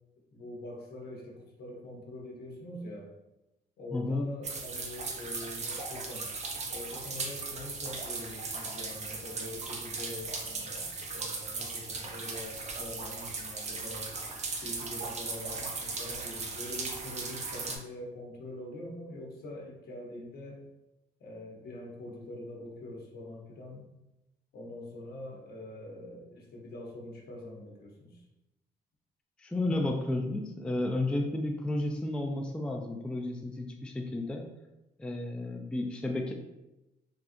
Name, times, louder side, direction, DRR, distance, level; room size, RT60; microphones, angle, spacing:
voice 1, 0.3-3.1 3.8-6.3 6.7-14.2 14.6-20.6 21.2-23.8 24.5-28.2, left 1 dB, 65° left, -2 dB, 0.9 m, -44 dB
voice 2, 3.9-4.3 29.4-34.5 35.0-36.3, left 2 dB, 5° left, 2 dB, 0.3 m, -32 dB
sound 1, 4.4-17.8, right 3 dB, 40° right, 0.6 m, -37 dB
3.4 x 2.3 x 2.6 m, 0.95 s
cardioid pair, 85°, 18 cm